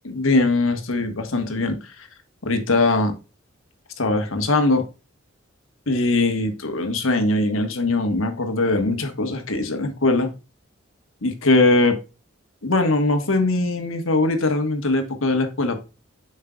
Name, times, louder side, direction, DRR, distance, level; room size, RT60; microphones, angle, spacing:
voice 1, 0.0-2.1 2.4-3.2 4.0-4.8 5.9-10.3 11.2-12.0 12.6-15.8, left 2 dB, 85° left, 7 dB, 1.2 m, -21 dB
7.5 x 5.5 x 2.3 m, 0.29 s
head